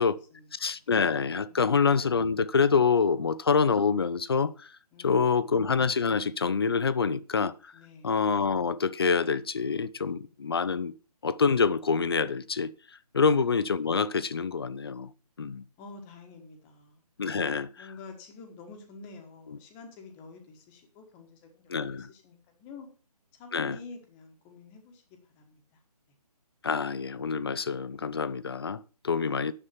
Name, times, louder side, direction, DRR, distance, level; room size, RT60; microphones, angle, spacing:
voice 1, 0.0-0.5 1.5-1.8 4.9-5.6 7.7-8.1 13.2-13.4 15.8-17.0 17.3-17.5 17.8-22.9 23.3-25.0 25.3-25.6 29.0-29.5, left 4 dB, 10° left, 1.3 m, -48 dB
voice 2, 0.6-4.5 5.0-7.5 8.0-10.9 11.2-12.7 13.1-15.1 15.4-15.6 17.2-17.7 21.7-22.1 23.5-23.8 26.6-29.5, left 5 dB, 40° left, 0.5 m, -26 dB
9.9 x 7.3 x 5.8 m
hypercardioid pair, 165°, 20 cm